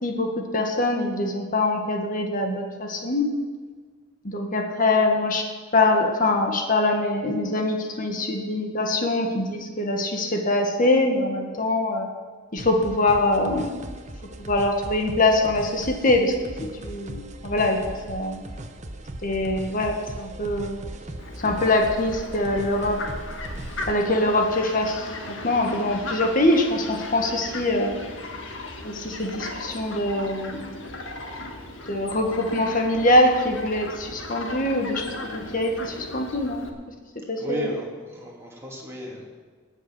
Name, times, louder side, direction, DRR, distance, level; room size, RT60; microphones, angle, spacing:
voice 1, 0.0-3.3 4.2-5.5 5.7-12.1 12.5-13.7 14.4-16.3 16.8-17.8 18.1-18.5 19.2-20.8 21.4-23.0 23.9-28.0 28.8-30.8 31.9-36.6 37.3-37.7, left 2 dB, 45° left, 2 dB, 1.8 m, -23 dB
sound 1, 12.6-23.9, right 1 dB, 40° right, 1.0 m, -38 dB
Fowl, 21.2-36.7, left 2 dB, 90° left, 1.7 m, -37 dB
voice 2, 37.4-39.2, right 1 dB, 15° right, -3 dB, 2.9 m, -34 dB
19.5 x 7.2 x 6.3 m, 1.5 s
head